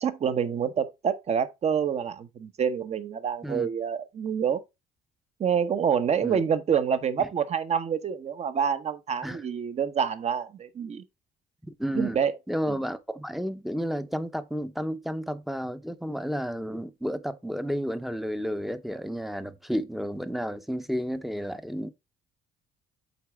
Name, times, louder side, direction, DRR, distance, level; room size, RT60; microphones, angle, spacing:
voice 1, 0.0-4.6 5.4-11.0 11.9-12.4 12.7-12.8, right 7 dB, 40° right, 0.9 m, -27 dB
voice 2, 11.8-12.2 12.5-21.9, equal, ahead, 0.7 m, -31 dB
8.2 x 4.0 x 3.4 m
cardioid pair, 110°, 17 cm